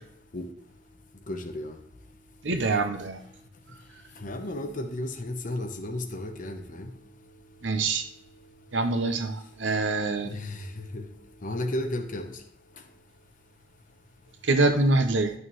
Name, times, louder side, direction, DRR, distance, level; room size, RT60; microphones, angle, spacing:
voice 1, 1.3-1.8 4.2-6.9 10.2-10.6 10.9-11.0 11.4-12.4, left 1 dB, 45° left, 0.9 m, -33 dB
voice 2, 2.4-3.2 7.6-8.0 8.7-10.3 14.4-15.3, right 3 dB, 70° right, 1.0 m, -25 dB
11.0 x 6.4 x 3.1 m
head